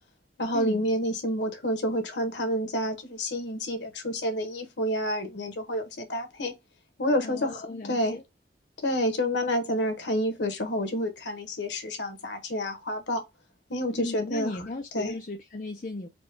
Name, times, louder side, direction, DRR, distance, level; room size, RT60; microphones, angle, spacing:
voice 1, 0.4-6.5 7.0-8.1 8.8-13.2 13.7-14.5 14.9-15.2, equal, 85° left, 1.2 m, -29 dB
voice 2, 7.2-8.2 14.0-16.1, left 2 dB, 45° left, 0.5 m, -36 dB
4.2 x 2.3 x 4.5 m
head